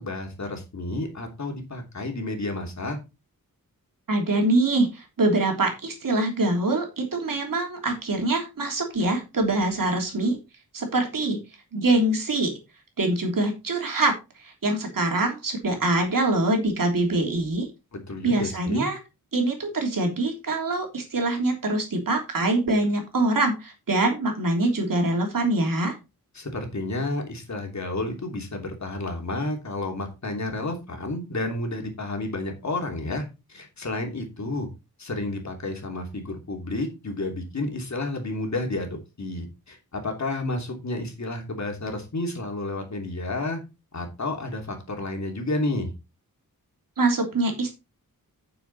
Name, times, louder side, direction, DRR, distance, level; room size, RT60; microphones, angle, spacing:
voice 1, 0.0-3.0 17.9-18.9 26.3-33.2 33.5-34.7 35.0-43.6 43.9-45.9, left 2 dB, 50° left, 3 dB, 3.0 m, -31 dB
voice 2, 4.1-10.4 10.7-11.4 11.7-12.5 13.0-14.1 14.4-17.7 18.2-19.0 19.3-26.0 47.0-47.7, right 2 dB, 65° right, 2 dB, 3.3 m, -24 dB
9.5 x 7.0 x 4.1 m, 0.26 s
wide cardioid pair, 115°, 35 cm